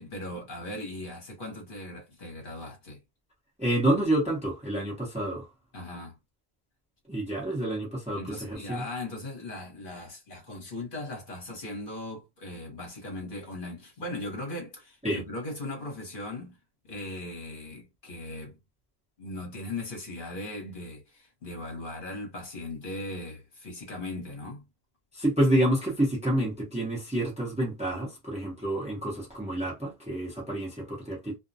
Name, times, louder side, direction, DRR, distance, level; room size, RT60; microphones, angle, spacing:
voice 1, 0.0-3.0 5.7-6.1 8.1-16.5 16.9-18.6 19.2-24.6, left 2 dB, 55° left, 1.1 m, -38 dB
voice 2, 3.6-5.5 7.1-8.8 15.0-15.2 25.1-31.4, right 1 dB, 5° right, 0.8 m, -28 dB
2.5 x 2.1 x 2.6 m
omnidirectional pair, 1.1 m